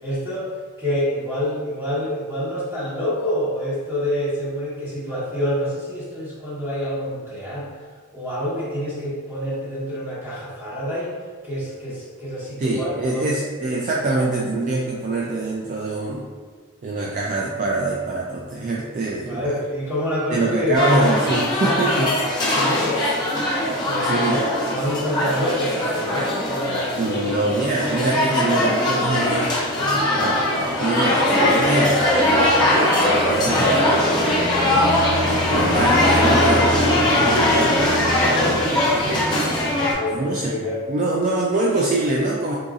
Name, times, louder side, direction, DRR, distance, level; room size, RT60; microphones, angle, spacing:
voice 1, 0.0-0.5 0.8-7.7 8.1-11.1 11.4-13.3 19.3-20.8 22.5-23.3 23.7-27.4 28.1-28.3 35.4-35.7 38.2-38.5 38.9-39.2 39.7-40.8, equal, 10° right, -9 dB, 1.1 m, -27 dB
voice 2, 12.6-16.3 16.8-19.5 20.3-22.6 23.0-23.1 23.8-24.4 27.0-34.9 35.5-38.6 39.0-39.3 40.1-40.6 40.9-42.6, right 2 dB, 40° right, -3 dB, 0.3 m, -25 dB
sound 1, 20.7-39.9, left 1 dB, 20° left, 0.7 m, -20 dB
3.8 x 2.7 x 2.4 m, 1.6 s
head